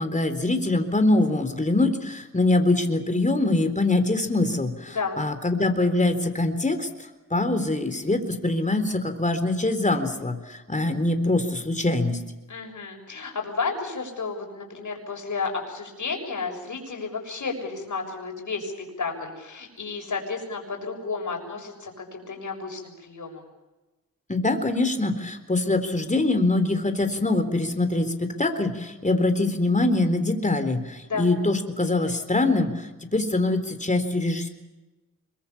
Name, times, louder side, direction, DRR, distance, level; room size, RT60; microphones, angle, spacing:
voice 1, 0.0-6.9 7.3-12.2 24.3-34.5, left 2 dB, 20° left, 8 dB, 3.9 m, -24 dB
voice 2, 4.9-5.2 12.5-18.7 19.0-23.5 31.0-31.3, left 4 dB, 60° left, 3 dB, 6.8 m, -32 dB
25.0 x 23.0 x 7.2 m, 1.1 s
cardioid pair, 50°, 35 cm